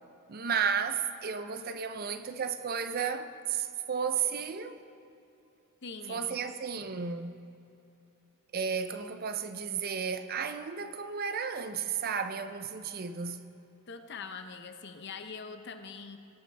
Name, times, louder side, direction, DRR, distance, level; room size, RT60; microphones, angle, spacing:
voice 1, 0.3-4.7 6.1-7.4 8.5-13.4, right 6 dB, 45° right, 0.5 m, -33 dB
voice 2, 5.8-6.4 13.9-16.2, left 5 dB, 50° left, 0.7 m, -43 dB
19.0 x 8.8 x 3.4 m
head